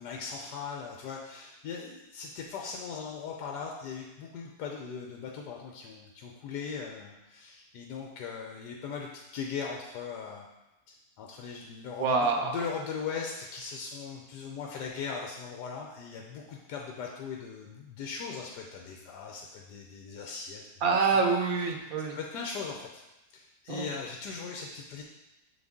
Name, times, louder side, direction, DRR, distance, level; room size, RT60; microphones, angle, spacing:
voice 1, 0.0-10.5 10.9-20.6 22.2-23.0 23.3-25.0, left 5 dB, 85° left, 0 dB, 1.3 m, -39 dB
voice 2, 12.0-12.5 20.8-22.1 23.7-23.9, right 4 dB, 65° right, 2 dB, 1.1 m, -26 dB
7.0 x 4.0 x 3.6 m, 0.98 s
omnidirectional pair, 1.8 m